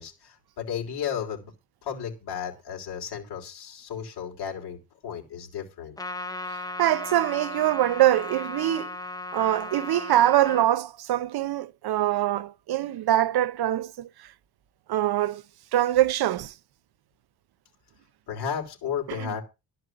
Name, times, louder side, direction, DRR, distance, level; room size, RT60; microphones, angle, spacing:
voice 1, 0.0-1.5 1.8-4.8 5.0-6.0 18.3-19.4, left 8 dB, 75° left, 3.2 m, -33 dB
Trumpet, 6.0-10.7, left 2 dB, 10° left, 0.7 m, -36 dB
voice 2, 6.8-9.0 9.3-14.1 14.9-15.4 15.7-16.5 19.1-19.3, right 13 dB, 70° right, 0.7 m, -23 dB
12.0 x 4.6 x 7.7 m
cardioid pair, 145°, 40 cm